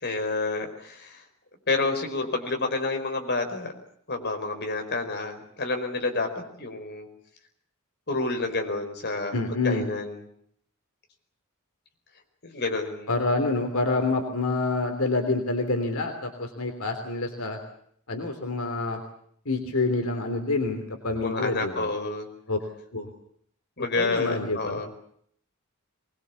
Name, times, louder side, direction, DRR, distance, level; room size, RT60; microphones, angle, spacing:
voice 1, 0.0-1.2 1.7-3.7 4.1-7.1 8.1-10.2 12.4-13.1 21.2-22.3 23.8-24.9, left 3 dB, 50° left, 5 dB, 4.7 m, -29 dB
voice 2, 9.3-9.9 13.1-17.6 18.1-19.0 19.4-21.9 22.5-22.6 22.9-23.1 23.9-24.8, left 3 dB, 75° left, 5 dB, 3.3 m, -27 dB
24.0 x 21.0 x 8.4 m, 0.66 s
head